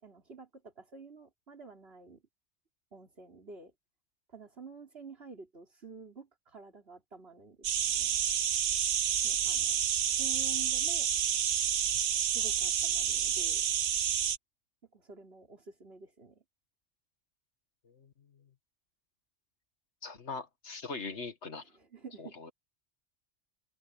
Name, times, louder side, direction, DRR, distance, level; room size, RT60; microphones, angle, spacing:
voice 1, 0.0-2.2 2.9-3.7 4.3-8.2 9.2-9.8 10.2-11.1 12.3-13.6 14.9-16.4 21.6-22.4, right 4 dB, 60° right, 4.2 m, -49 dB
sound 1, 7.6-14.4, right 9 dB, 75° right, 1.1 m, -29 dB
voice 2, 20.0-21.6 22.2-22.5, left 4 dB, 70° left, 2.1 m, -41 dB
omnidirectional pair, 1.2 m